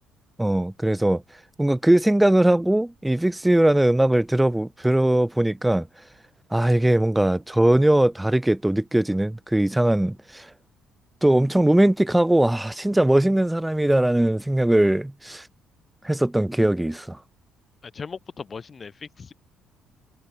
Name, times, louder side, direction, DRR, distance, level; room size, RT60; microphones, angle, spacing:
voice 1, 0.4-1.2 1.6-5.9 6.5-10.5 11.2-15.4 16.0-17.2, right 1 dB, 5° right, 6.3 m, -20 dB
voice 2, 17.8-19.3, left 5 dB, 35° left, 7.7 m, -38 dB
cardioid pair, 100°, 0 cm